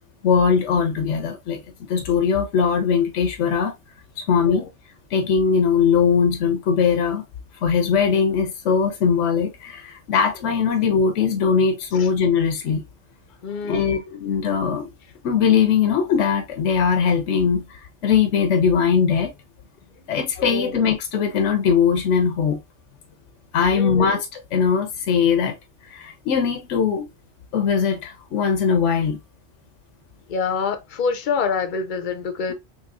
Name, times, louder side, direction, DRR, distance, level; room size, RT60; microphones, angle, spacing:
voice 1, 0.2-1.6 1.9-3.7 4.2-4.7 5.1-7.2 7.6-12.8 13.6-14.9 15.2-19.3 20.1-22.6 23.5-24.3 24.5-25.6 25.9-27.1 27.5-29.2, left 6 dB, 70° left, 1.0 m, -20 dB
voice 2, 4.4-4.7 10.4-10.6 11.9-12.1 13.4-14.0 20.4-20.8 23.7-24.1 30.3-32.5, left 5 dB, 50° left, 0.7 m, -27 dB
4.1 x 3.1 x 2.3 m
omnidirectional pair, 1.3 m